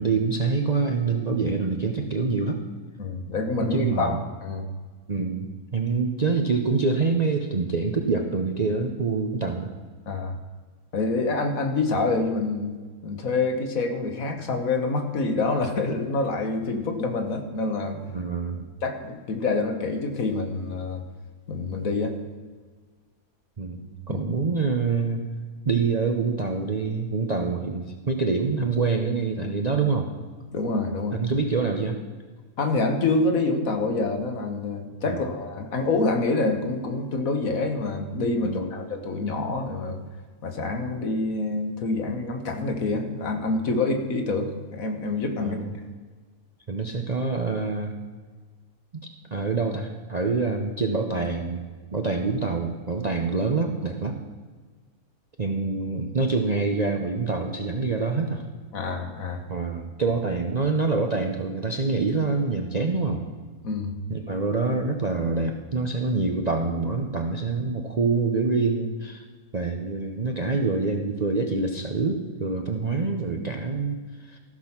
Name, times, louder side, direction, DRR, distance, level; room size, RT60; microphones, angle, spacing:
voice 1, 0.0-2.6 3.6-4.2 5.1-9.7 18.1-18.7 23.6-25.2 25.7-30.1 31.1-32.0 35.1-35.2 38.4-38.7 45.4-45.7 46.7-47.9 48.9-51.6 51.9-54.2 55.4-58.4 59.5-63.2 64.1-69.2 69.5-74.4, right 4 dB, 40° right, 3 dB, 0.6 m, -26 dB
voice 2, 3.0-4.7 10.1-10.4 10.9-12.8 13.0-18.0 18.8-21.0 21.5-22.2 24.1-24.3 30.5-31.2 32.6-40.0 40.4-45.6 58.7-59.4 63.6-63.9, left 3 dB, 60° left, 5 dB, 1.6 m, -26 dB
14.5 x 6.2 x 5.8 m, 1.4 s
omnidirectional pair, 1.6 m